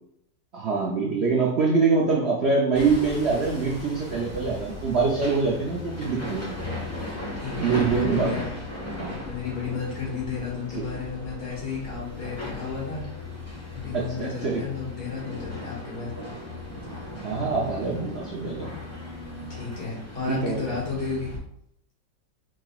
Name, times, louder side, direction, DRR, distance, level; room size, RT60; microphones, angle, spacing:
voice 1, 0.5-6.6 7.6-8.3 9.0-9.2 10.8-10.9 13.9-14.6 17.2-18.7 20.3-20.6, right 4 dB, 65° right, -2 dB, 0.6 m, -24 dB
Hammer, 2.7-21.4, left 2 dB, 10° left, 0.9 m, -37 dB
voice 2, 7.4-8.5 9.2-13.0 13.7-16.1 19.5-21.3, left 5 dB, 75° left, -5 dB, 2.6 m, -32 dB
4.8 x 4.7 x 2.3 m, 0.72 s
omnidirectional pair, 2.0 m